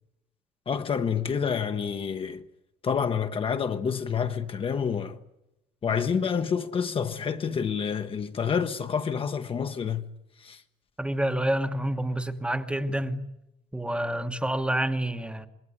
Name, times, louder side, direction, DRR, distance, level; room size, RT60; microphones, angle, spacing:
voice 1, 0.7-2.4 2.8-5.2 5.8-10.0 10.4-10.6, left 6 dB, 30° left, 1.0 m, -28 dB
voice 2, 11.0-13.2 13.7-15.5, right 1 dB, 5° right, 1.2 m, -28 dB
26.5 x 20.5 x 9.7 m
cardioid pair, 160°, 18 cm